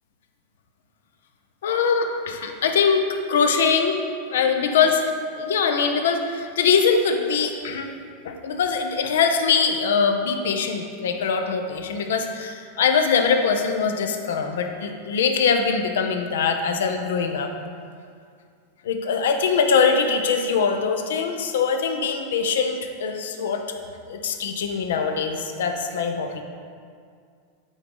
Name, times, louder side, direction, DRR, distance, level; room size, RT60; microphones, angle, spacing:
voice 1, 1.6-3.0 3.3-4.0 4.3-7.9 8.2-17.5 18.8-23.6 24.1-26.4, left 5 dB, 80° left, 5 dB, 0.6 m, -22 dB
8.9 x 3.9 x 3.8 m, 2.2 s
hypercardioid pair, 110°, 0 cm